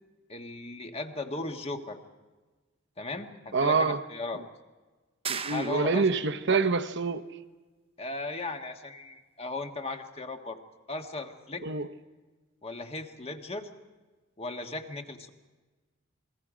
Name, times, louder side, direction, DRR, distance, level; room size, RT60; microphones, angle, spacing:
voice 1, 0.3-2.0 3.0-4.4 5.5-6.1 8.0-10.6 10.9-11.6 12.6-13.7 14.4-15.3, left 2 dB, 30° left, 1.5 m, -37 dB
voice 2, 3.5-4.0 5.3-7.2 11.6-11.9, right 4 dB, 60° right, 1.0 m, -26 dB
sound 1, 5.3-6.3, right 6 dB, 30° right, 0.9 m, -36 dB
28.5 x 21.5 x 5.1 m
head